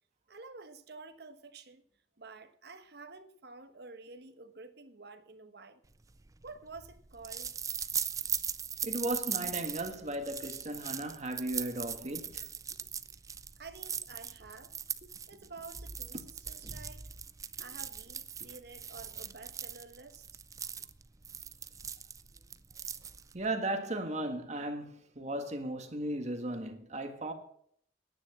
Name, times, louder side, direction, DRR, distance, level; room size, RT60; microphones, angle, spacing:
voice 1, 0.3-1.8 2.2-5.8 6.4-7.5 13.6-14.7 15.3-17.1 17.6-20.4, right 4 dB, 60° right, 1.2 m, -50 dB
sound 1, 6.0-23.5, right 7 dB, 20° right, 0.4 m, -40 dB
voice 2, 8.8-12.5 23.3-27.3, right 1 dB, 40° right, 1.6 m, -36 dB
9.9 x 9.6 x 7.2 m
head